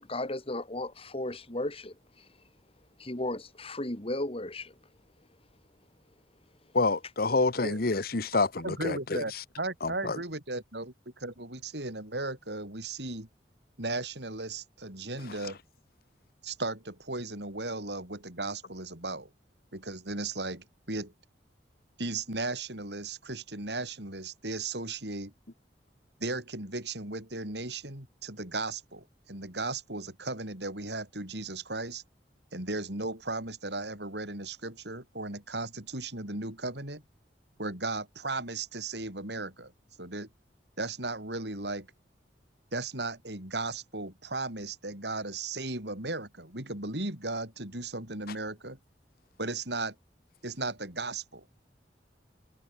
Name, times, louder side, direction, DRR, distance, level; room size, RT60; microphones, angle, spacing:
voice 1, 0.0-2.3 3.0-4.7, left 1 dB, 35° left, 2.8 m, -35 dB
voice 2, 6.7-9.4 9.8-10.2, left 3 dB, 60° left, 1.2 m, -28 dB
voice 3, 8.6-13.3 13.8-15.6 16.4-19.3 19.7-21.1 22.0-25.3 26.2-32.0 32.5-37.0 37.6-39.7 40.0-40.3 40.8-41.9 42.7-48.8 49.4-49.9 50.4-51.5, right 2 dB, 70° right, 7.3 m, -36 dB
head